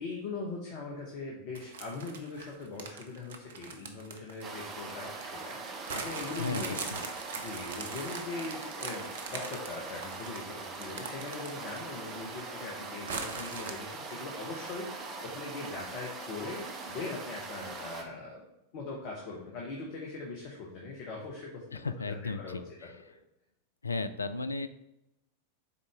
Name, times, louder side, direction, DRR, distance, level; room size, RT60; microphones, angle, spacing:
voice 1, 0.0-6.9 7.4-18.4 18.7-23.2, left 3 dB, 45° left, -2 dB, 1.2 m, -41 dB
sound 1, 1.5-5.3 5.9-12.0 12.3-12.4 13.1-13.7, right 5 dB, 60° right, 0.7 m, -41 dB
sound 2, 4.4-18.0, right 3 dB, 30° right, 0.9 m, -42 dB
voice 2, 6.4-7.0 21.7-22.9 23.8-24.7, left 3 dB, 80° left, 12 dB, 0.3 m, -35 dB
6.8 x 4.2 x 3.5 m, 0.86 s
figure-of-eight pair, 90°, 0 cm